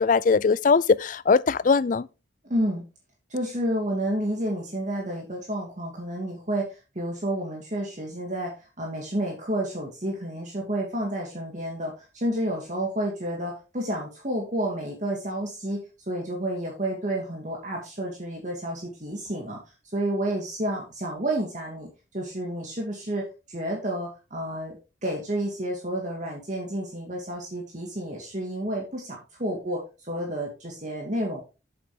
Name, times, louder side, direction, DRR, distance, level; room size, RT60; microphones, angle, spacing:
voice 1, 0.0-2.1, left 4 dB, 40° left, 0.4 m, -20 dB
voice 2, 2.4-2.8 3.3-6.7 7.0-15.8 16.1-19.6 19.9-21.9 22.1-24.8 25.0-29.8 30.1-31.4, right 1 dB, 40° right, 2.2 m, -30 dB
8.0 x 7.6 x 3.7 m
head